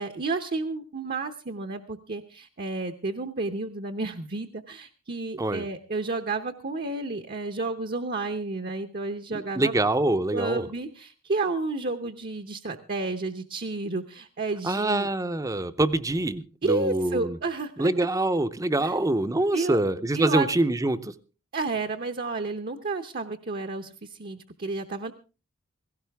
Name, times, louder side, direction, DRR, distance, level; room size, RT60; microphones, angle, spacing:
voice 1, 0.0-9.7 10.3-15.1 16.6-17.9 18.8-18.9 19.5-19.8 20.1-20.5 21.5-25.1, right 3 dB, 45° right, 0.8 m, -31 dB
voice 2, 9.3-10.7 14.6-17.4 17.8-21.1, right 2 dB, 15° right, 0.6 m, -25 dB
17.0 x 16.5 x 3.4 m
head